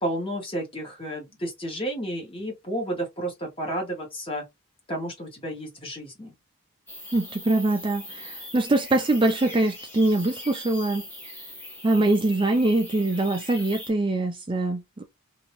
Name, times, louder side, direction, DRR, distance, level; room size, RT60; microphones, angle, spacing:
voice 1, 0.0-4.4 4.9-6.3, right 1 dB, 25° left, 1.4 m, -31 dB
sound 1, 6.9-13.9, left 1 dB, 10° left, 1.2 m, -41 dB
voice 2, 7.1-11.0 11.8-15.0, right 2 dB, 25° right, 0.4 m, -23 dB
2.9 x 2.8 x 3.0 m
head